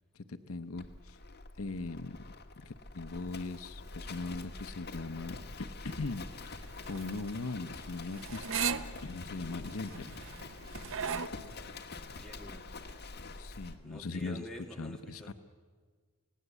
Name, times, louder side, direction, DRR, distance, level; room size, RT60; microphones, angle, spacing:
voice 1, 0.1-1.2 1.6-2.2 2.6-8.5 9.0-10.2 13.4-14.5 14.8-15.3, left 3 dB, 65° left, 10 dB, 0.8 m, -40 dB
Livestock farm animals working animals, 0.8-13.8, left 3 dB, 50° left, 1.6 m, -46 dB
sound 1, 5.9-11.3, right 6 dB, 60° right, 0.8 m, -38 dB
voice 2, 12.1-12.7 13.8-15.3, left 1 dB, ahead, -1 dB, 2.4 m, -48 dB
29.5 x 17.5 x 8.2 m, 1.6 s
head